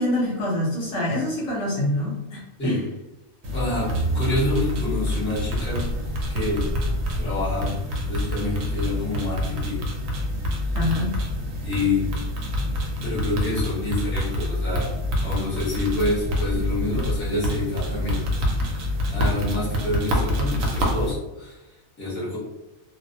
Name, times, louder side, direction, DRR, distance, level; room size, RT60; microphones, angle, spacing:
voice 1, 0.0-2.8 10.7-11.2, left 1 dB, 70° left, -4 dB, 0.9 m, -25 dB
sound 1, 3.4-21.1, left 1 dB, 75° right, 1.0 m, -26 dB
voice 2, 3.5-5.9 6.3-6.7 7.2-7.7 8.1-9.9 11.6-12.1 13.0-14.9 15.2-18.3 18.7-18.8 19.1-21.6 22.0-22.4, left 2 dB, 10° left, -8 dB, 0.7 m, -27 dB
2.4 x 2.0 x 2.6 m, 0.99 s
omnidirectional pair, 1.4 m